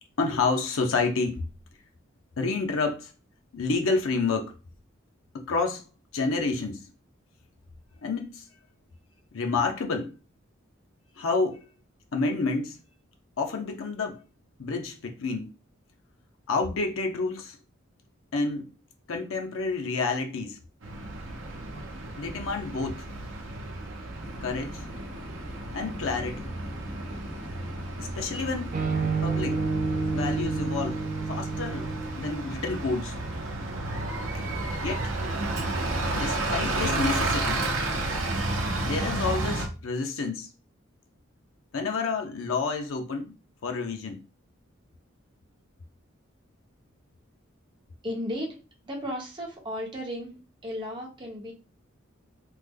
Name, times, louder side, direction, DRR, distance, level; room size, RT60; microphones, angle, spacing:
voice 1, 0.2-1.5 2.4-3.1 3.5-4.5 5.3-5.8 6.1-6.8 8.0-8.4 9.3-10.1 11.2-11.6 12.1-12.8 13.4-14.2 14.6-15.5 16.5-17.6 18.3-18.6 19.1-20.6 22.2-23.0 24.4-24.8 25.7-26.5 28.0-28.7 29.2-29.6 30.1-31.0 31.3-33.2 34.8-35.2 36.2-37.7 38.8-40.5 41.7-43.4 43.6-44.2, left 4 dB, 90° left, 0.6 m, -29 dB
Bus, 20.8-39.7, right 2 dB, 70° right, 0.7 m, -32 dB
sound 1, 24.2-30.8, left 2 dB, 45° left, 1.1 m, -45 dB
sound 2, 28.7-32.5, right 4 dB, 40° right, 0.5 m, -29 dB
voice 2, 48.0-48.6 48.8-51.5, equal, 25° right, 0.9 m, -34 dB
3.2 x 2.1 x 3.4 m
head